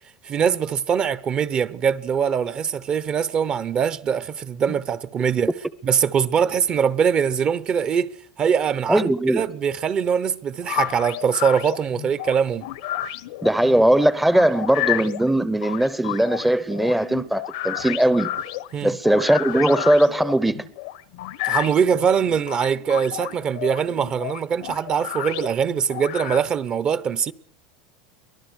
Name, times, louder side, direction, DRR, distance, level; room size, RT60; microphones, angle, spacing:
voice 1, 0.2-5.5 5.8-12.7 18.7-18.9 21.4-27.3, right 7 dB, 35° right, 0.9 m, -22 dB
voice 2, 8.9-9.4 13.4-18.3 18.8-20.7, right 1 dB, 5° right, 0.8 m, -19 dB
sound 1, 10.6-26.4, left 15 dB, 75° left, 1.1 m, -31 dB
24.0 x 18.0 x 6.4 m
supercardioid pair, 125°, 3 cm